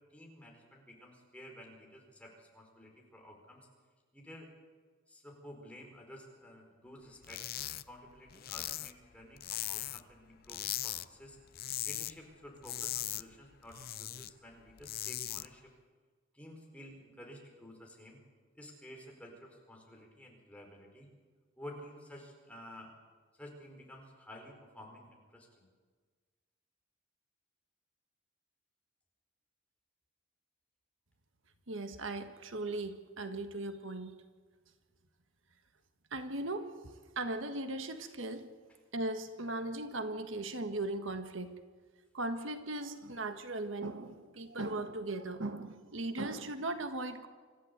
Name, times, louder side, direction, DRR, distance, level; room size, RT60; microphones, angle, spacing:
voice 1, 0.1-3.7 4.1-4.5 5.1-7.4 7.9-11.4 11.8-15.7 16.3-18.2 18.5-21.1 21.6-22.9 23.4-25.6, left 1 dB, 5° left, 0 dB, 4.7 m, -52 dB
sound 1, 7.2-7.8 8.1-10.1 10.5-11.1 11.4-12.1 12.4-14.3 14.7-15.5, left 14 dB, 50° left, 0.5 m, -39 dB
voice 2, 31.7-34.1 36.1-38.5 38.9-41.5 42.1-47.3, right 2 dB, 75° right, 8 dB, 1.6 m, -38 dB
26.0 x 14.0 x 8.2 m, 1.5 s
head